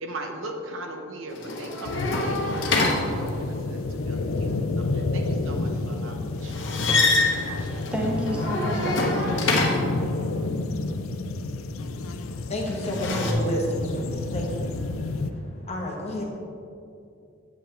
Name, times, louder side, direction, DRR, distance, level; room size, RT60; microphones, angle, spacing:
voice 1, 0.0-4.5 5.1-6.5 7.3-7.8, right 2 dB, 75° right, 3 dB, 0.9 m, -38 dB
sound 1, 1.3-3.7 6.4-10.0 12.7-13.3, left 2 dB, 60° left, 1.0 m, -26 dB
sound 2, 1.9-15.3, left 3 dB, 85° left, 0.5 m, -30 dB
voice 2, 7.9-9.9, equal, 5° right, -2 dB, 0.6 m, -30 dB
voice 3, 12.1-16.3, equal, 30° left, -1 dB, 1.1 m, -31 dB
8.0 x 7.7 x 3.3 m, 2.5 s
head